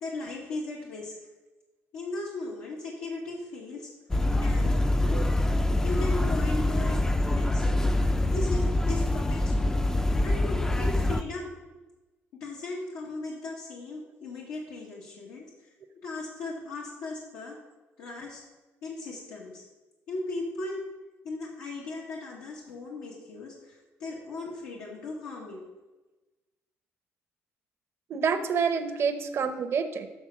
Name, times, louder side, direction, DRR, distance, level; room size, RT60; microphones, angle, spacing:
voice 1, 0.0-1.1 1.9-3.9 4.4-5.2 5.8-7.0 7.3-7.9 8.3-9.7 10.2-11.5 12.4-15.7 16.0-17.6 18.0-18.4 18.8-19.6 20.1-20.8 21.2-25.7, left 2 dB, 90° left, -3 dB, 1.1 m, -37 dB
sound 1, 4.1-11.2, left 1 dB, 10° left, 0.3 m, -25 dB
voice 2, 28.1-30.1, right 6 dB, 50° right, 7 dB, 0.6 m, -28 dB
7.1 x 3.4 x 6.0 m, 1.1 s
cardioid pair, 90°, 5 cm